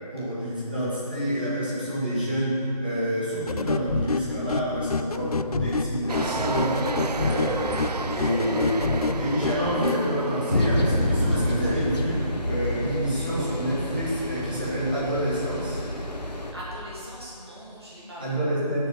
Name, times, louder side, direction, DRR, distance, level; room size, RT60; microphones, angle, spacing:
voice 1, 0.1-7.8 8.2-15.8 18.2-18.9, equal, 15° right, -10 dB, 1.7 m, -28 dB
sound 1, 3.5-10.0, left 3 dB, 65° left, 0.4 m, -28 dB
sound 2, 6.1-12.4, right 3 dB, 75° right, 0.6 m, -32 dB
voice 2, 7.3-8.3 16.5-18.2, equal, 40° right, -8 dB, 2.6 m, -42 dB
sound 3, 10.5-16.5, left 1 dB, 85° left, 1.7 m, -28 dB
9.1 x 6.8 x 8.3 m, 2.5 s
figure-of-eight pair, 180°, 21 cm